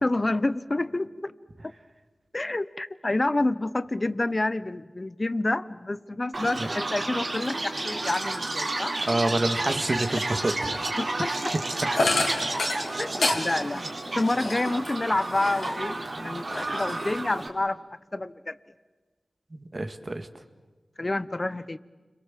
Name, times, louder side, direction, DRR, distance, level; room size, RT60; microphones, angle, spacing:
voice 1, 0.0-1.3 2.3-9.0 11.0-11.5 11.9-12.0 13.0-13.8 14.2-17.8 18.1-18.6 21.0-21.8, left 2 dB, 35° left, 15 dB, 0.9 m, -28 dB
Chirp tweet, 6.3-17.5, right 2 dB, 60° right, 3.5 m, -31 dB
voice 2, 9.1-10.9 12.0-12.1 19.5-20.3, right 2 dB, 40° right, 8 dB, 2.0 m, -28 dB
sound 1, 11.9-15.9 16.3-17.5, left 2 dB, 80° left, 3.2 m, -30 dB
30.0 x 22.5 x 7.6 m, 1.4 s
cardioid pair, 50°, 0 cm